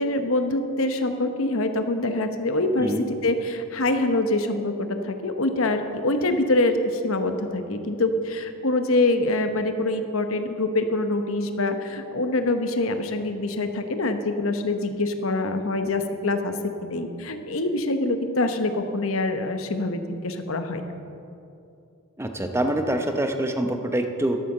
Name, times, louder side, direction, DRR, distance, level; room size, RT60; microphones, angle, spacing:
voice 1, 0.0-16.5 16.8-20.8, left 2 dB, 65° left, 7 dB, 0.9 m, -25 dB
voice 2, 22.2-24.4, right 1 dB, 10° right, 5 dB, 0.7 m, -25 dB
13.0 x 8.3 x 6.7 m, 2.6 s
head